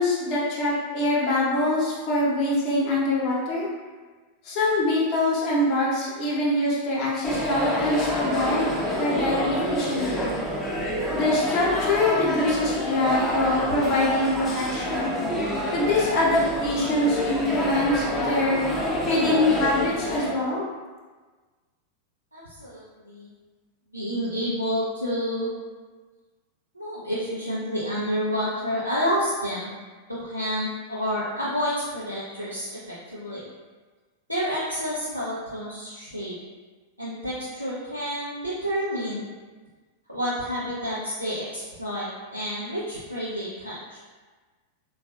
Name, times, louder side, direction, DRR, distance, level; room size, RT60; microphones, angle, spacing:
voice 1, 0.0-3.7 4.4-8.7 9.0-10.4 11.1-15.1 15.7-18.6 19.1-20.6, left 2 dB, 40° left, -6 dB, 0.9 m, -24 dB
sound 1, 7.2-20.3, left 1 dB, 5° left, 0.6 m, -28 dB
voice 2, 22.3-23.3 23.9-25.5 26.7-29.7 30.1-33.4 34.3-36.3 37.0-39.2 40.1-44.0, equal, 90° right, -9 dB, 0.5 m, -29 dB
3.7 x 2.3 x 2.3 m, 1.3 s
figure-of-eight pair, 90°, 0 cm